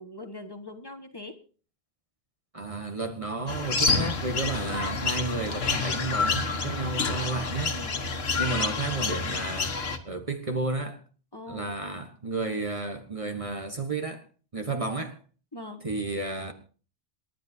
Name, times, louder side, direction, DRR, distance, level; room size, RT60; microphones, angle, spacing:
voice 1, 0.0-1.4 7.6-8.0 8.3-8.6 11.3-11.7 14.7-14.9 15.5-15.8, left 1 dB, 25° left, 1.4 m, -42 dB
voice 2, 2.5-7.8 8.4-9.8 10.0-11.0 11.5-14.2 14.5-15.2 15.8-16.5, right 3 dB, 35° right, 1.3 m, -32 dB
sound 1, 3.5-10.0, left 4 dB, 70° left, 1.6 m, -28 dB
28.0 x 10.5 x 2.7 m
omnidirectional pair, 1.1 m